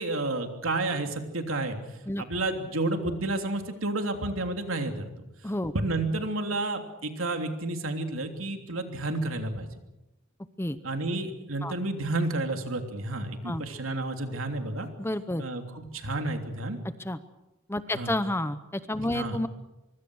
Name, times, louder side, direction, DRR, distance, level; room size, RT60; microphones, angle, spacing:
voice 1, 0.0-1.8 2.2-5.2 5.7-9.7 10.8-14.9 15.4-16.8 17.9-18.1 19.1-19.4, right 2 dB, 80° right, 5 dB, 3.2 m, -31 dB
voice 2, 15.0-15.4 17.0-17.2 17.7-19.5, left 1 dB, 10° left, 12 dB, 0.7 m, -30 dB
25.0 x 23.0 x 6.4 m, 0.95 s
head